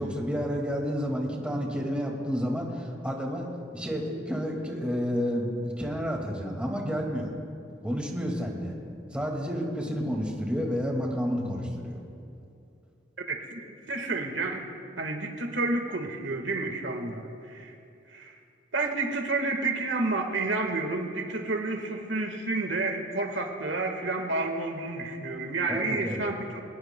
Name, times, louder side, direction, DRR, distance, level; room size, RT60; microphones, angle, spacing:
voice 1, 0.0-3.5 3.7-7.3 7.8-8.7 9.1-12.0 25.7-26.2, equal, 5° right, 0 dB, 2.0 m, -30 dB
voice 2, 13.3-14.6 15.0-17.7 18.1-18.3 18.7-26.6, right 3 dB, 85° right, 4 dB, 1.5 m, -30 dB
22.5 x 19.0 x 2.2 m, 2.6 s
head